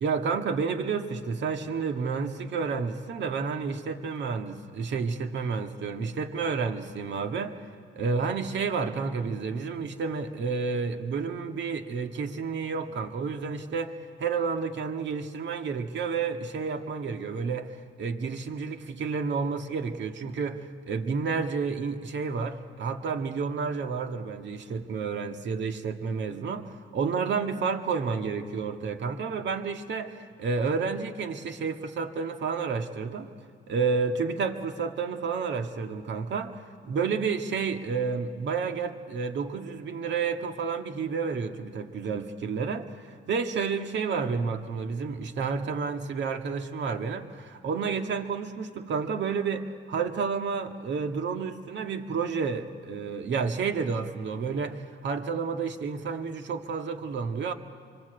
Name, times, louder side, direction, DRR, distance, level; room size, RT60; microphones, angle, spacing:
voice 1, 0.0-7.6 7.9-13.9 14.2-33.3 33.7-57.5, right 5 dB, 65° right, 6 dB, 1.7 m, -30 dB
25.5 x 24.5 x 8.0 m, 2.1 s
cardioid pair, 90°, 20 cm